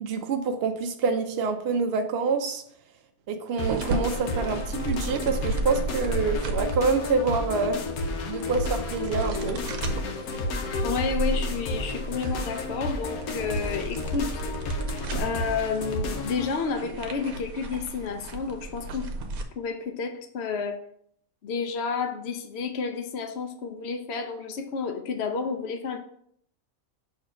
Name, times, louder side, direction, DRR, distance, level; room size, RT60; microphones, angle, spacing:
voice 1, 0.0-2.6 3.3-7.8 8.3-9.6, right 4 dB, 60° right, 5 dB, 0.7 m, -26 dB
sound 1, 3.6-16.5, left 2 dB, 85° left, 1.3 m, -32 dB
sound 2, 3.6-19.4, right 2 dB, 75° right, 1.2 m, -35 dB
voice 2, 10.8-14.3 15.1-19.1 19.6-20.8 21.4-26.0, left 5 dB, 60° left, 5 dB, 0.8 m, -30 dB
6.5 x 3.1 x 5.0 m, 0.66 s
omnidirectional pair, 1.5 m